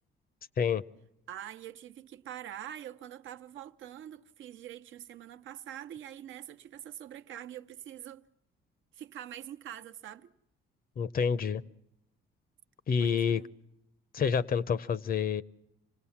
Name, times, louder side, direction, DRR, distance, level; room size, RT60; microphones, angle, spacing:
voice 1, 1.3-8.3 8.9-10.3 13.0-13.5, right 11 dB, 75° right, 0.8 m, -45 dB
voice 2, 11.0-11.6 12.9-13.4 14.1-15.4, left 6 dB, 50° left, 0.7 m, -28 dB
26.0 x 18.5 x 7.3 m
cardioid pair, 90°, 20 cm